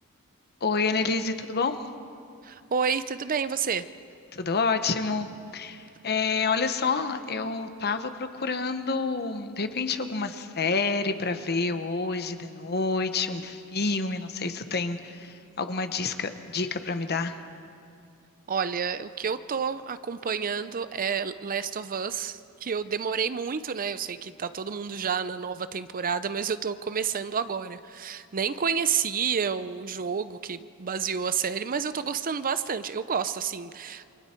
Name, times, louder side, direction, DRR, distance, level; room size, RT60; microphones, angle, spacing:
voice 1, 0.6-1.7 4.3-17.3, left 4 dB, 45° left, 8 dB, 1.1 m, -28 dB
voice 2, 2.4-3.9 14.0-14.1 18.5-34.1, right 6 dB, 40° right, 13 dB, 0.6 m, -30 dB
28.5 x 25.0 x 4.5 m, 2.4 s
head